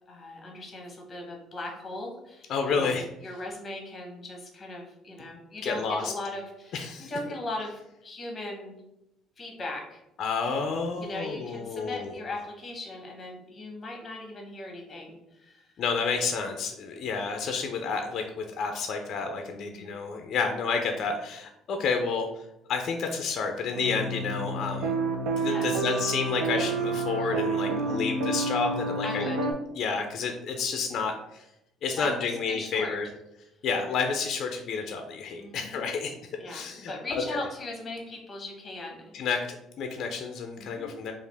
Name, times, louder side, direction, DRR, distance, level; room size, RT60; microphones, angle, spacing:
voice 1, 0.1-8.8 9.4-10.0 11.0-15.7 19.5-19.9 25.4-25.7 27.7-28.1 29.0-29.4 32.0-33.0 35.4-35.9 36.4-39.1 40.6-40.9, left 2 dB, 20° left, 1 dB, 0.9 m, -39 dB
voice 2, 2.5-3.0 5.6-6.1 6.7-7.1 10.2-12.1 15.8-22.3 22.7-24.9 25.4-29.2 29.7-31.4 31.8-33.1 33.6-36.1 36.5-37.4 39.1-41.1, left 5 dB, 45° left, 4 dB, 0.4 m, -30 dB
sound 1, 23.7-29.5, right 3 dB, 80° right, 0.5 m, -29 dB
4.7 x 2.4 x 3.3 m, 0.86 s
cardioid pair, 170°, 0 cm